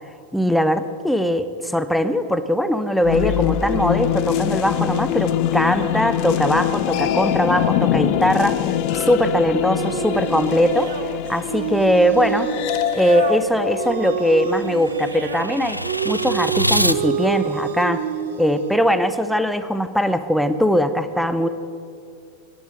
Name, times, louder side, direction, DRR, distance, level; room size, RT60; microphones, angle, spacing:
voice 1, 0.3-8.5 9.0-10.9 11.3-12.5 12.9-15.8 16.0-18.0 18.4-21.5, equal, ahead, 11 dB, 0.8 m, -20 dB
sound 1, 3.0-14.8, left 10 dB, 45° left, 0.7 m, -23 dB
sound 2, 9.8-18.8, right 9 dB, 55° right, 0.8 m, -28 dB
sound 3, 13.3-17.0, equal, 90° left, 0.4 m, -26 dB
12.0 x 11.0 x 8.8 m, 2.3 s
figure-of-eight pair, 90°, 0 cm